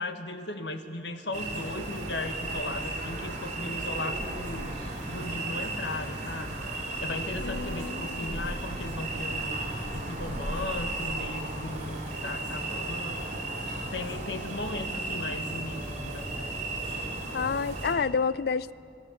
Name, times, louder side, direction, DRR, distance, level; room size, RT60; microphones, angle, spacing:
voice 1, 0.0-6.5 7.0-9.6 9.9-13.4 13.9-16.6, left 2 dB, 80° left, 7 dB, 1.6 m, -37 dB
sound 1, 1.3-17.9, right 2 dB, 45° right, 3.8 m, -34 dB
voice 2, 7.4-8.4 17.3-18.7, left 5 dB, 60° left, 19 dB, 0.4 m, -29 dB
28.0 x 18.5 x 7.3 m, 2.6 s
head